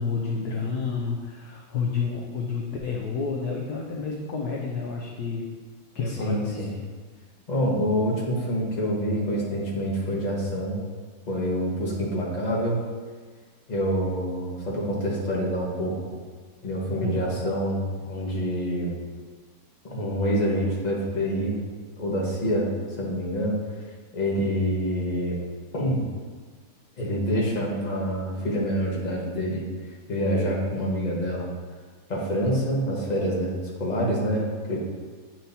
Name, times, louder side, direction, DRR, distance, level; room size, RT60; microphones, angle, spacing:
voice 1, 0.0-5.5 5.9-6.8 17.0-17.3, left 5 dB, 70° left, -1 dB, 0.9 m, -30 dB
voice 2, 6.2-6.7 7.5-10.8 11.3-12.8 13.7-15.9 16.6-18.9 19.8-21.6 22.0-23.6 24.1-25.3 25.7-26.0 27.0-29.6 30.1-31.5 32.1-34.8, equal, 25° left, -4 dB, 1.0 m, -26 dB
8.8 x 4.5 x 2.7 m, 1.5 s
omnidirectional pair, 2.2 m